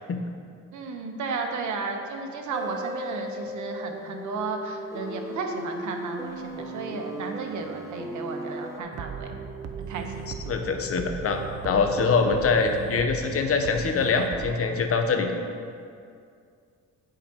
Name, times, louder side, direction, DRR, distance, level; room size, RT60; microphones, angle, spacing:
voice 1, 0.7-9.3 9.8-10.3 15.1-15.4, right 4 dB, 75° right, 3 dB, 1.1 m, -34 dB
sound 1, 2.5-8.8, equal, 10° right, 1.0 m, -36 dB
sound 2, 8.9-14.6, right 7 dB, 55° right, 0.6 m, -37 dB
voice 2, 10.5-15.3, left 4 dB, 50° left, 5 dB, 0.9 m, -24 dB
15.0 x 5.0 x 2.9 m, 2.3 s
cardioid pair, 90°, 30 cm